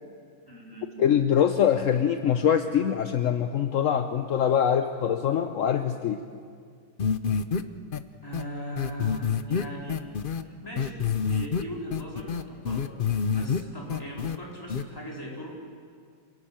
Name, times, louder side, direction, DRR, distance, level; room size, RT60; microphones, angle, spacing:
voice 1, 0.5-0.9 8.2-10.1 10.4-12.9 13.3-15.6, equal, 10° left, -3 dB, 4.7 m, -39 dB
voice 2, 1.0-6.2, left 8 dB, 60° left, 8 dB, 0.9 m, -23 dB
sound 1, 7.0-7.6 7.9-8.0 8.3-8.4 8.8-10.4 10.7-11.6 11.9-13.6 13.9-14.4 14.7-14.8, left 6 dB, 85° left, 0.4 m, -27 dB
27.5 x 17.5 x 8.9 m, 2.2 s
omnidirectional pair, 2.1 m